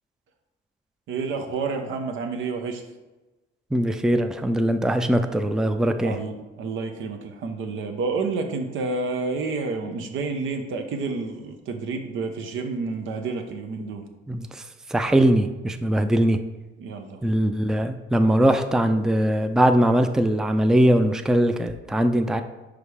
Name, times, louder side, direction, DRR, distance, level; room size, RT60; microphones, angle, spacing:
voice 1, 1.1-2.8 5.8-14.0 16.8-17.2, right 4 dB, 80° right, 5 dB, 0.9 m, -29 dB
voice 2, 3.7-6.2 14.3-14.6 14.9-16.4 17.2-22.4, right 1 dB, 5° right, 8 dB, 0.4 m, -21 dB
5.1 x 4.9 x 4.8 m, 1.1 s
cardioid pair, 90°, 20 cm